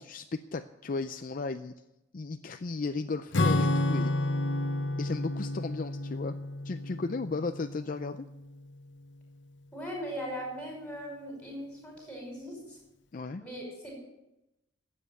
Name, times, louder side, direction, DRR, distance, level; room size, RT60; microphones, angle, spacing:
voice 1, 0.0-1.7 2.1-4.1 5.0-6.4 6.6-8.3 13.1-13.4, left 3 dB, 45° left, 9 dB, 0.5 m, -35 dB
Acoustic guitar / Strum, 3.3-8.1, left 1 dB, 65° left, 1.0 m, -30 dB
voice 2, 9.7-12.8 13.4-14.0, equal, 5° left, -1 dB, 5.4 m, -39 dB
12.5 x 8.5 x 8.8 m, 0.92 s
head